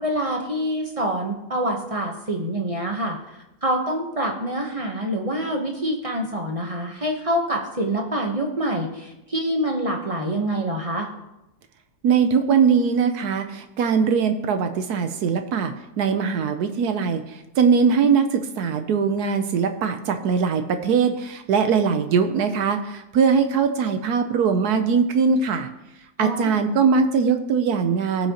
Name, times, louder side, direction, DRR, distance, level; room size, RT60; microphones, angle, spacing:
voice 1, 0.0-11.1 26.2-26.5, right 1 dB, 30° right, 2 dB, 0.6 m, -26 dB
voice 2, 12.0-25.7 26.2-28.3, right 6 dB, 70° right, 8 dB, 1.1 m, -21 dB
18.0 x 6.0 x 2.9 m, 0.94 s
omnidirectional pair, 2.0 m